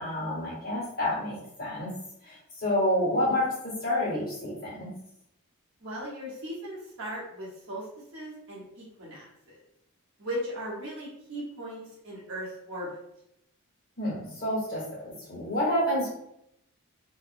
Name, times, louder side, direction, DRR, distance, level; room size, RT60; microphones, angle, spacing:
voice 1, 0.0-1.9 2.2-4.9 14.0-16.1, left 1 dB, 40° left, -7 dB, 1.4 m, -29 dB
voice 2, 5.8-7.9 8.1-9.6 10.2-12.9, equal, 55° right, -6 dB, 0.9 m, -38 dB
2.7 x 2.1 x 2.5 m, 0.80 s
head